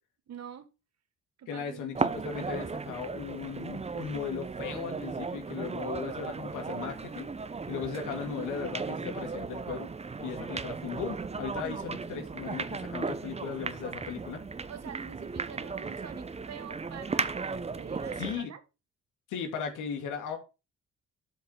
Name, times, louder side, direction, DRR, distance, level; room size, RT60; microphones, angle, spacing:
voice 1, 0.3-0.7 1.4-1.9 14.7-18.6, right 8 dB, 60° right, 1.5 m, -46 dB
voice 2, 1.5-7.3 7.7-9.9 10.2-14.4 18.2-18.5 19.3-20.4, left 6 dB, 85° left, 2.5 m, -37 dB
sound 1, 1.9-18.4, right 4 dB, 20° right, 0.8 m, -36 dB
7.8 x 5.3 x 5.8 m
cardioid pair, 90°, 30 cm